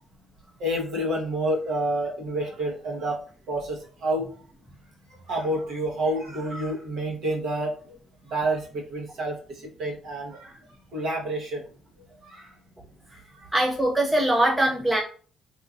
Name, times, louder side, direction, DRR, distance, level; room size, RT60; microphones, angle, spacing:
voice 1, 0.6-3.2 3.5-4.3 5.3-8.0 8.2-10.5 10.9-11.6 12.2-12.5 13.1-13.5, right 1 dB, 60° right, -2 dB, 0.9 m, -29 dB
voice 2, 13.5-15.0, right 1 dB, 5° right, -1 dB, 0.4 m, -22 dB
2.9 x 2.3 x 2.4 m, 0.41 s
cardioid pair, 165°, 0 cm